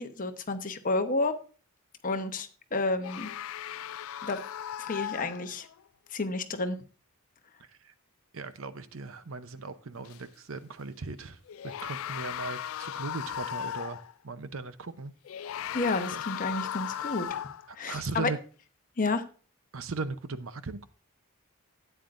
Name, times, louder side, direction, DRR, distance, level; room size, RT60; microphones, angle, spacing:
voice 1, 0.0-1.4 2.0-3.3 4.2-4.4 4.8-5.7 6.1-6.8 15.7-17.4 17.7-18.3 19.0-19.3, left 3 dB, 40° left, 8 dB, 0.9 m, -30 dB
sound 1, 3.0-5.8 10.0-10.2 11.5-14.1 15.2-17.7, left 10 dB, 70° left, 0.3 m, -37 dB
voice 2, 8.3-11.4 11.6-15.1 16.1-16.2 17.7-18.4 19.7-20.8, right 3 dB, 65° right, 12 dB, 0.7 m, -38 dB
13.0 x 9.1 x 2.5 m, 0.37 s
head